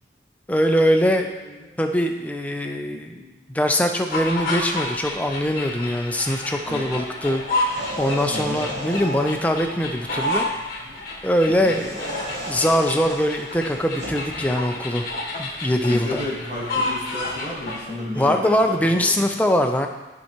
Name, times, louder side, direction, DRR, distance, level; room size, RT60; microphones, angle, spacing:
voice 1, 0.5-1.3 1.8-3.2 3.5-10.5 11.2-15.0 15.4-16.2 18.1-19.9, equal, 10° left, 4 dB, 0.4 m, -22 dB
voice 2, 1.2-1.8 2.9-3.6 6.6-7.0 8.3-9.2 9.7-10.3 10.8-11.0 11.6-12.4 15.9-19.1, left 1 dB, 40° right, -6 dB, 1.6 m, -34 dB
sound 1, 4.1-17.8, left 2 dB, 50° left, 1.4 m, -30 dB
sound 2, 7.6-9.4 11.6-14.3, equal, 75° right, 1.3 m, -34 dB
12.0 x 4.5 x 2.9 m, 1.1 s
head